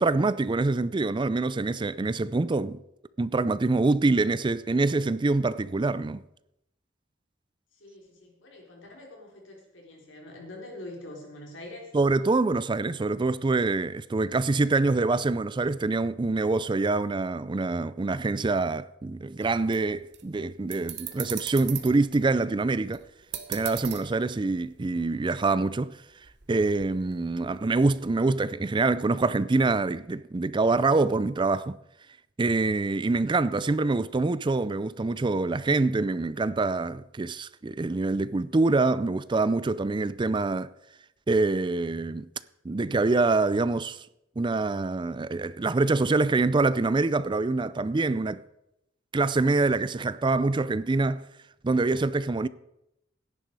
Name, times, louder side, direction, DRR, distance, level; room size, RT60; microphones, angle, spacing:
voice 1, 0.0-2.8 3.2-6.2 11.9-23.0 23.5-26.0 26.5-31.8 32.4-40.7 41.3-42.3 42.6-44.1 44.4-48.4 49.1-51.2 51.6-52.5, right 3 dB, 25° right, 0.4 m, -25 dB
voice 2, 7.7-11.9, left 1 dB, 85° left, 4.2 m, -44 dB
sound 1, 19.4-25.3 25.5-25.8 26.1-28.3, right 11 dB, 60° right, 1.3 m, -40 dB
16.5 x 10.5 x 4.8 m
head